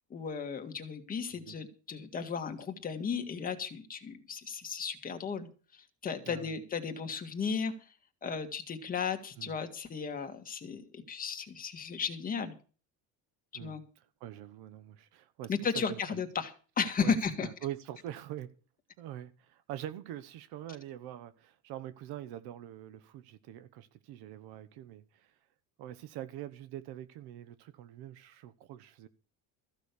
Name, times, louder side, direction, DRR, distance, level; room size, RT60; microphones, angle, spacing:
voice 1, 0.1-7.7 8.2-12.5 13.6-13.8 15.5-17.5, left 6 dB, 20° left, 1.9 m, -35 dB
voice 2, 13.5-16.2 17.0-18.5 19.0-25.4 25.8-29.1, right 12 dB, 75° right, 1.1 m, -44 dB
14.5 x 6.5 x 8.2 m
cardioid pair, 180°, 38 cm